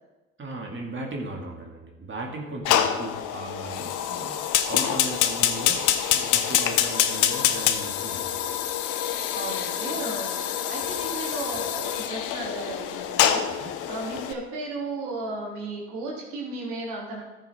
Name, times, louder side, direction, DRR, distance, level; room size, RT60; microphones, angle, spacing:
voice 1, 0.4-8.6 10.8-10.9 13.6-13.7, right 2 dB, 35° right, 0 dB, 2.2 m, -37 dB
Fire, 2.7-14.3, left 10 dB, 65° left, 0.9 m, -26 dB
voice 2, 9.3-17.2, right 2 dB, 70° right, -4 dB, 3.2 m, -35 dB
14.0 x 6.7 x 4.4 m, 1.1 s
hypercardioid pair, 55°, 33 cm